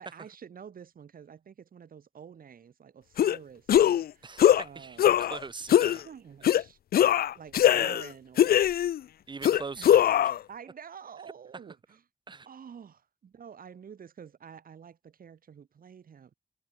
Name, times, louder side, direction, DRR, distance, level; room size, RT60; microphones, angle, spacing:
voice 1, 0.0-4.4 4.6-5.2 6.0-6.8 7.3-9.0 9.7-10.1 10.5-12.0 12.4-16.3, right 7 dB, 65° right, 3.2 m, -49 dB
sound 1, 3.2-3.4 3.7-4.1 4.4-4.6 5.0-5.4 5.7-6.0 6.4-6.6 6.9-8.1 8.4-9.0 9.4-10.4, left 11 dB, 75° left, 0.5 m, -21 dB
voice 2, 4.2-6.0 9.3-10.3 12.3-12.5, right 4 dB, 30° right, 0.8 m, -42 dB
wide cardioid pair, 115°, 16 cm